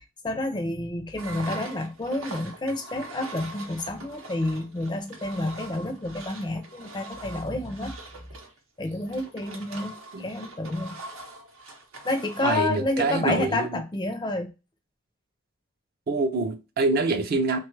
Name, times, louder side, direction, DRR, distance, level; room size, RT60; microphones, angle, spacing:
voice 1, 0.2-7.9 8.8-11.0 12.0-14.5, left 2 dB, 20° left, 0.4 m, -29 dB
Engine, 1.2-12.6, right 2 dB, 85° right, 0.7 m, -42 dB
voice 2, 12.4-13.8 16.1-17.6, right 3 dB, 45° right, 0.4 m, -25 dB
3.2 x 2.2 x 3.1 m
head